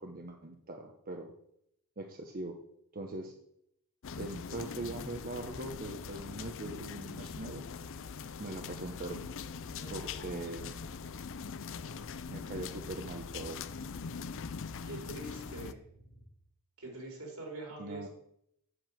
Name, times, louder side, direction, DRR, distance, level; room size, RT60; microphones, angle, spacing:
voice 1, 0.0-1.3 2.0-2.6 2.9-3.3 4.2-7.7 8.4-9.3 9.9-10.8 12.3-13.6 17.8-18.1, right 2 dB, 40° right, 3 dB, 1.0 m, -41 dB
sound 1, 4.0-15.7, left 5 dB, 65° left, 0.5 m, -42 dB
voice 2, 9.6-10.5 14.8-15.8 16.8-18.1, right 2 dB, 75° right, 1 dB, 3.8 m, -45 dB
sound 2, 10.6-16.3, equal, 90° left, 1.8 m, -55 dB
7.9 x 7.0 x 7.7 m, 0.75 s
head